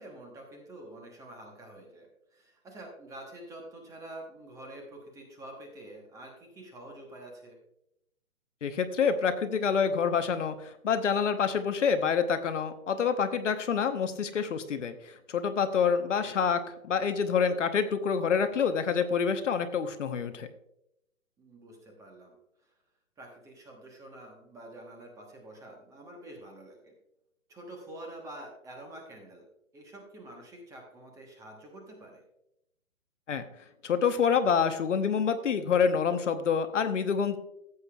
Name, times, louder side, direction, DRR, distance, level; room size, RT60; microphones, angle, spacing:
voice 1, 0.0-7.6 16.0-16.4 21.4-22.7 23.2-26.9 27.5-29.4 29.7-32.2, right 1 dB, 10° right, 1 dB, 1.1 m, -47 dB
voice 2, 8.6-14.9 15.3-20.5 33.3-33.5 33.8-37.4, left 6 dB, 60° left, 9 dB, 1.0 m, -27 dB
15.5 x 8.1 x 2.3 m, 0.80 s
figure-of-eight pair, 140°, 41 cm